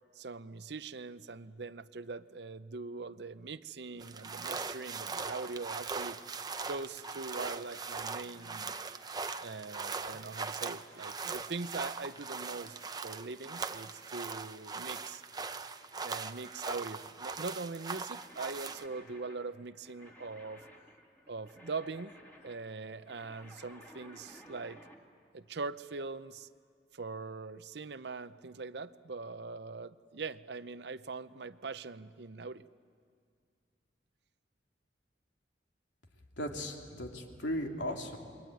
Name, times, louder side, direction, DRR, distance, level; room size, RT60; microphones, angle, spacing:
voice 1, 0.1-6.2 6.6-8.7 9.4-15.2 16.0-20.7 21.3-22.1 22.4-24.8 25.3-26.5 26.9-32.7, right 4 dB, 65° right, 14 dB, 0.7 m, -42 dB
sound 1, 4.0-18.9, right 4 dB, 20° right, 0.7 m, -40 dB
sound 2, 18.1-25.0, equal, 10° left, 2.3 m, -56 dB
voice 2, 36.4-38.2, equal, 80° left, 2 dB, 3.0 m, -37 dB
28.0 x 22.5 x 9.2 m, 2.1 s
head